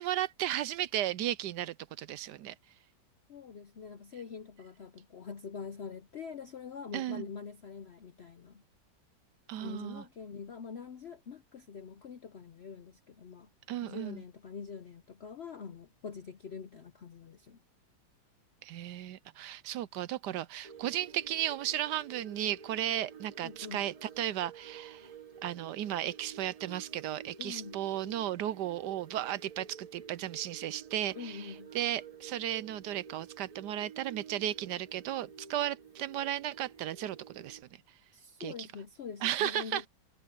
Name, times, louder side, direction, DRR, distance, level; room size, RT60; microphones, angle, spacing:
voice 1, 0.0-2.5 6.9-7.2 9.5-10.0 13.7-14.2 18.6-25.1 25.4-37.6 38.4-38.7 39.2-39.9, right 12 dB, 75° right, 1.1 m, -35 dB
voice 2, 3.3-8.6 9.6-13.5 13.8-17.6 23.4-23.8 27.4-27.8 31.2-31.7 38.1-39.9, left 6 dB, 80° left, 0.5 m, -44 dB
sound 1, 20.6-37.6, right 7 dB, 55° right, 0.4 m, -51 dB
omnidirectional pair, 2.0 m